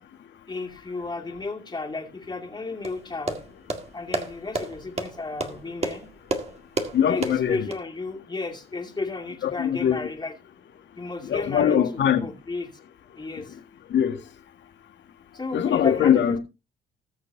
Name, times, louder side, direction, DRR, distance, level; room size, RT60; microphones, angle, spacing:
voice 1, 0.5-3.4 3.9-6.1 7.1-10.3 11.0-12.8 13.2-13.5 15.3-16.4, left 3 dB, 20° left, 2.5 m, -33 dB
sound 1, 2.8-7.8, right 3 dB, 30° right, 1.9 m, -32 dB
voice 2, 6.9-7.7 9.4-10.0 11.2-12.3 13.9-14.2 15.5-16.4, left 9 dB, 65° left, 1.8 m, -22 dB
19.5 x 6.7 x 2.7 m
cardioid pair, 90°, 20 cm